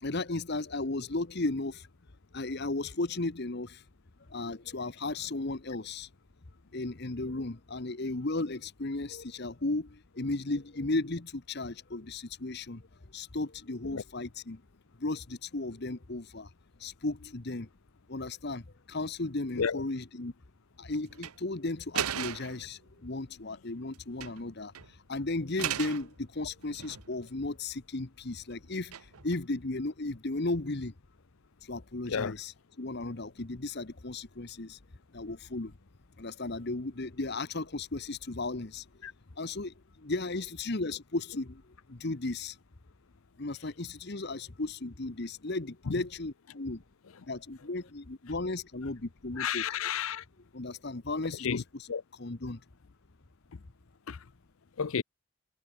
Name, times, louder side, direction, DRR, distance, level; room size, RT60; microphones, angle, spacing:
voice 1, 0.0-1.8 2.3-3.8 4.3-6.1 6.7-12.8 13.1-14.6 15.0-16.5 16.8-17.7 18.1-18.6 18.9-20.3 20.8-24.7 25.1-28.9 29.2-30.9 31.7-34.8 35.1-35.7 36.2-38.8 39.4-39.7 40.0-41.6 41.9-42.5 43.4-46.8 47.3-49.6 50.5-51.9 52.2-52.6, left 2 dB, 50° left, 1.1 m, -35 dB
sound 1, 21.1-21.3 21.9-22.6 23.9-24.4 24.7-24.9 25.6-26.1 26.6-27.3 28.9-29.3, right 10 dB, 85° right, 0.8 m, -36 dB
voice 2, 49.4-50.2 51.4-51.6 51.9-52.0 54.1-54.2 54.8-55.0, left 7 dB, 70° left, 0.6 m, -31 dB
head